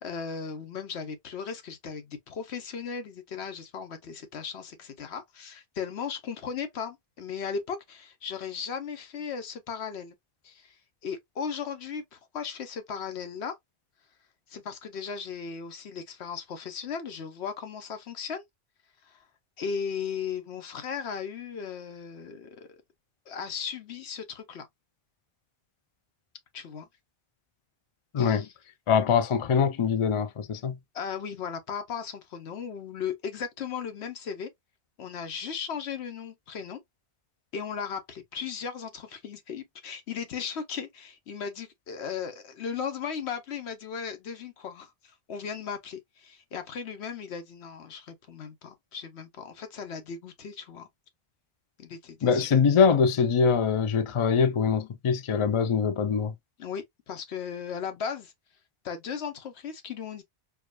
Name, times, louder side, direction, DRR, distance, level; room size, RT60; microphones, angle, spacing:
voice 1, 0.0-10.1 10.4-10.8 11.0-13.6 14.5-18.4 19.0-19.2 19.6-22.8 23.3-24.7 26.5-26.9 28.2-28.5 30.9-34.5 35.0-36.8 37.5-50.9 51.8-52.5 56.6-58.3 58.8-60.2, left 6 dB, 75° left, 1.1 m, -36 dB
voice 2, 28.1-28.5 28.9-30.8 52.2-56.3, left 6 dB, 50° left, 0.3 m, -23 dB
4.7 x 2.3 x 2.3 m
omnidirectional pair, 1.1 m